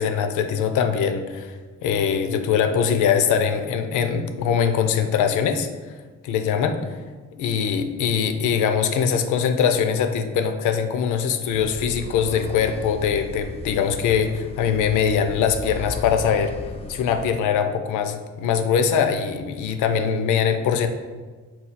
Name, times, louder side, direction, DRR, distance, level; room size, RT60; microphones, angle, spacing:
voice 1, 0.0-5.7 6.2-6.9 7.4-16.6 16.9-20.9, left 7 dB, 80° left, 8 dB, 0.5 m, -22 dB
sound 1, 11.5-17.3, left 1 dB, 20° left, 0.4 m, -36 dB
4.2 x 2.3 x 4.0 m, 1.4 s
cardioid pair, 90°, 30 cm